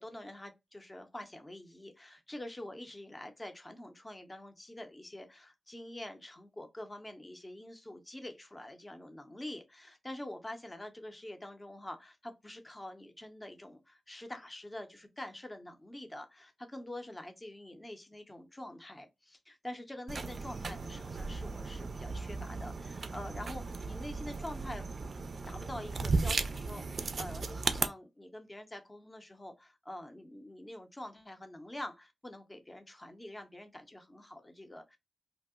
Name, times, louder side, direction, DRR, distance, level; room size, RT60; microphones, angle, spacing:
voice 1, 0.0-25.1 25.5-35.0, left 1 dB, 20° left, 0.6 m, -46 dB
sound 1, 20.1-27.9, right 3 dB, 55° right, 0.3 m, -36 dB
2.7 x 2.0 x 3.6 m
cardioid pair, 75°, 0 cm